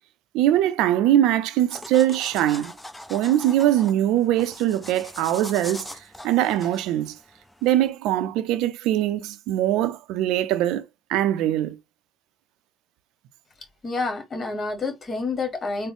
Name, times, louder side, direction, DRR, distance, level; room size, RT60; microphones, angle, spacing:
voice 1, 0.3-2.7 3.1-5.9 6.2-7.1 7.6-10.8 11.1-11.8, right 12 dB, 75° right, 0.4 m, -22 dB
sound 1, 1.7-7.9, left 1 dB, 10° left, 0.9 m, -41 dB
voice 2, 13.8-15.9, left 3 dB, 40° left, 1.3 m, -28 dB
3.7 x 2.0 x 3.5 m
hypercardioid pair, 65°, 0 cm